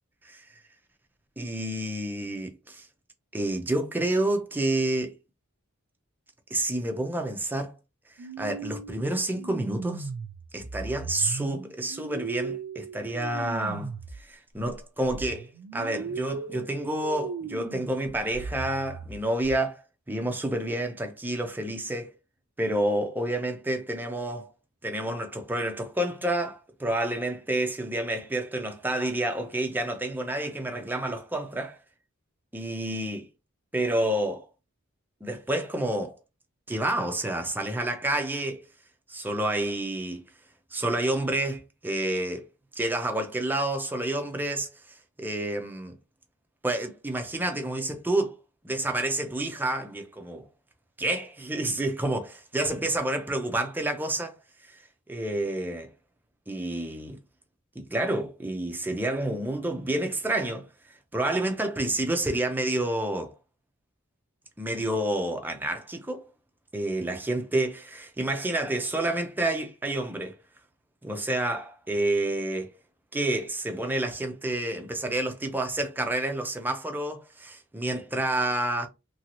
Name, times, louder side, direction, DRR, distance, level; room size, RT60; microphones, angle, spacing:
voice 1, 1.4-2.9 3.3-5.1 6.5-7.7 8.4-10.1 10.5-13.9 14.2-19.8 20.1-22.1 22.6-24.5 24.8-31.8 32.5-33.3 33.7-34.5 35.2-36.2 36.7-38.6 39.1-40.2 40.7-42.5 42.7-44.7 45.2-45.9 46.6-48.4 48.6-50.5 51.0-54.4 54.6-54.8 55.1-55.9 56.5-57.2 57.8-60.7 61.1-63.3 64.6-66.3 66.7-70.4 71.0-72.7 73.1-78.9, right 1 dB, 10° right, 0.4 m, -29 dB
sound 1, 8.2-14.2 14.6-19.6, right 4 dB, 80° right, 0.4 m, -38 dB
3.0 x 2.6 x 2.9 m
head